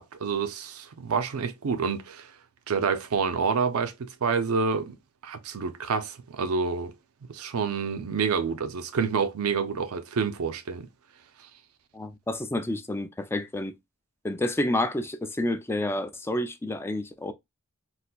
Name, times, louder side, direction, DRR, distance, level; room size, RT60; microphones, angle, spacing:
voice 1, 0.0-2.3 2.7-5.0 5.2-6.9 7.3-10.9, right 5 dB, 80° right, 0.5 m, -28 dB
voice 2, 11.9-13.8 14.2-17.3, left 1 dB, 10° left, 0.3 m, -29 dB
4.0 x 2.5 x 2.2 m
head